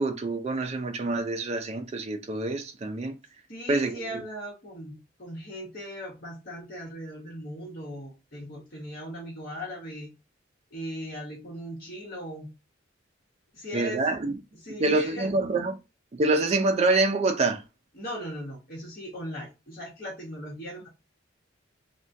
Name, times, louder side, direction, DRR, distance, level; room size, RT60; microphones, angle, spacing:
voice 1, 0.0-3.2 3.7-4.2 13.7-14.4 14.8-15.8 16.1-17.6, right 2 dB, 35° right, 0.4 m, -26 dB
voice 2, 3.5-10.1 10.7-12.5 13.5-14.1 14.6-15.3 17.9-20.9, equal, 50° left, 1.0 m, -38 dB
3.3 x 2.2 x 2.6 m
head